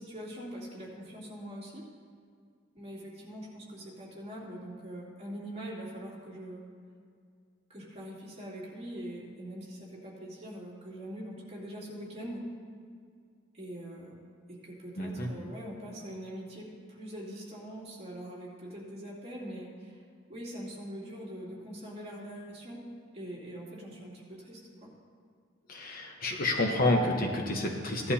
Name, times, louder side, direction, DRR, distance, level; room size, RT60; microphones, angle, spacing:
voice 1, 0.0-1.8 2.7-6.6 7.7-12.4 13.5-14.1 14.5-20.0 20.3-22.9 23.1-24.9, equal, 30° right, -6 dB, 3.0 m, -43 dB
voice 2, 15.0-15.3 25.7-28.1, left 1 dB, 45° left, 1 dB, 1.1 m, -29 dB
17.0 x 11.0 x 2.8 m, 2.2 s
head